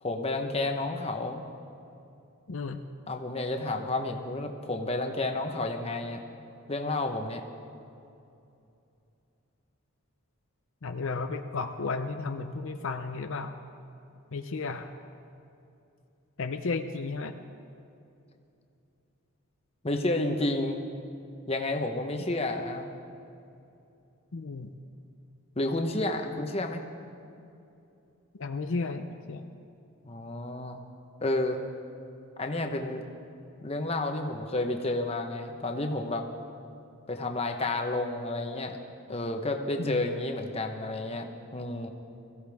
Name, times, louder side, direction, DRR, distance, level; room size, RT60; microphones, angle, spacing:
voice 1, 0.0-1.4 3.1-6.2 6.7-7.4 19.8-20.8 21.5-22.9 25.6-26.8 30.0-30.8 31.2-31.6 32.4-33.0 33.6-36.3 37.1-38.8 39.1-41.9, left 2 dB, 25° left, 4 dB, 1.0 m, -31 dB
voice 2, 2.5-2.8 10.8-13.6 14.3-14.9 16.4-17.4 24.3-24.7 28.4-29.4 39.8-40.0, left 4 dB, 65° left, 6 dB, 0.6 m, -33 dB
22.5 x 15.5 x 3.5 m, 2.7 s
head